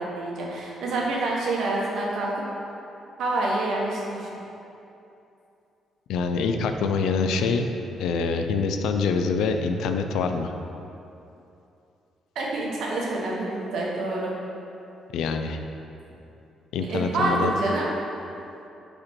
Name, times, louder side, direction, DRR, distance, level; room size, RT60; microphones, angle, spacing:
voice 1, 0.0-2.4 3.2-4.3 12.3-14.3 16.8-17.9, right 2 dB, 70° right, -3 dB, 1.2 m, -27 dB
voice 2, 6.1-7.7 8.0-10.5 15.1-15.6 16.7-17.5, left 5 dB, 85° left, 6 dB, 0.4 m, -25 dB
5.0 x 4.3 x 4.5 m, 2.8 s
cardioid pair, 90°, 0 cm